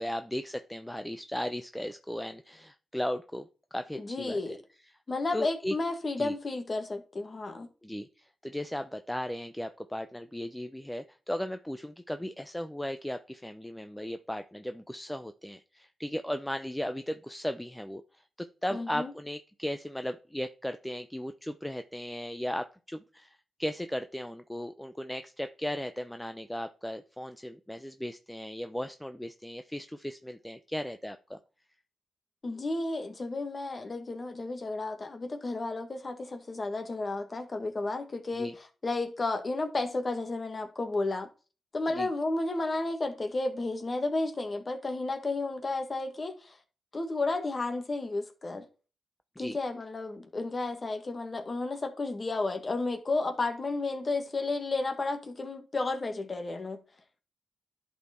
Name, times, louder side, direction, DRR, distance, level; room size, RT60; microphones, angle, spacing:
voice 1, 0.0-3.5 3.7-4.6 5.3-5.7 6.2-6.3 7.8-18.0 18.4-31.4 38.3-38.5 41.9-42.1 49.4-49.6, left 1 dB, 10° left, 0.7 m, -36 dB
voice 2, 3.9-4.6 5.1-7.7 18.7-19.1 32.4-38.5 38.8-41.3 41.7-46.6 46.9-48.7 49.4-56.8, left 2 dB, 40° left, 1.8 m, -32 dB
11.0 x 4.4 x 4.4 m
supercardioid pair, 40°, 0 cm